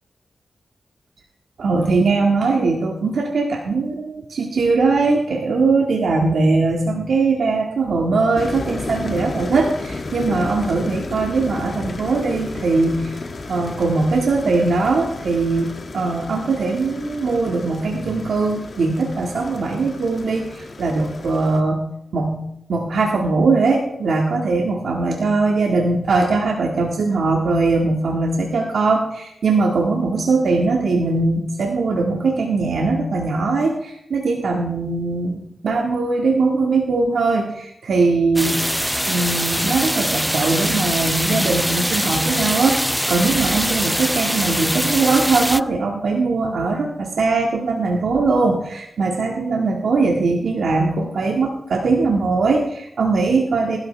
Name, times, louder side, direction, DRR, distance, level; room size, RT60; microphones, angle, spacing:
voice 1, 1.6-13.2 13.5-21.8 22.1-38.7 39.1-53.8, right 3 dB, 80° right, 0 dB, 1.8 m, -20 dB
sound 1, 8.4-21.6, left 3 dB, 55° left, 2.2 m, -33 dB
sound 2, 38.4-45.6, equal, ahead, 0.4 m, -22 dB
20.0 x 13.0 x 3.4 m, 0.81 s
cardioid pair, 55°, 0 cm